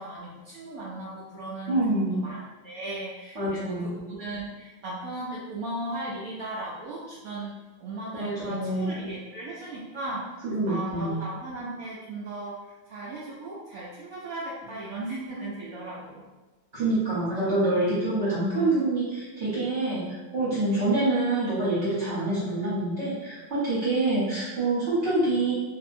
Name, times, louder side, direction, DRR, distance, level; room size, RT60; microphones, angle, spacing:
voice 1, 0.0-2.4 2.6-7.5 7.8-10.2 10.7-16.2, right 2 dB, 85° right, -7 dB, 0.7 m, -37 dB
voice 2, 1.7-2.2 3.3-4.0 8.1-8.9 10.4-11.2 16.7-25.5, right 2 dB, 45° right, -10 dB, 0.9 m, -26 dB
2.8 x 2.6 x 2.5 m, 1.2 s
omnidirectional pair, 2.1 m